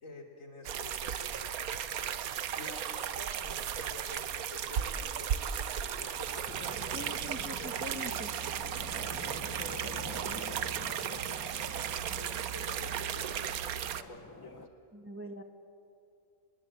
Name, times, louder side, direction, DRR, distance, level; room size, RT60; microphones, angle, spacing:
voice 1, 0.0-2.0 2.6-5.3 6.0-8.2 8.9-14.7, left 2 dB, 65° left, 2 dB, 3.6 m, -49 dB
sound 1, 0.6-14.0, right 9 dB, 80° right, 1.3 m, -35 dB
Wind instrument woodwind instrument, 4.9-10.0, left 1 dB, 80° left, 3.4 m, -57 dB
sound 2, 6.5-14.7, left 2 dB, 15° left, 0.7 m, -48 dB
voice 2, 6.9-8.3 14.9-15.4, equal, 10° right, 5 dB, 1.1 m, -43 dB
26.0 x 21.5 x 8.8 m, 2.6 s
omnidirectional pair, 1.5 m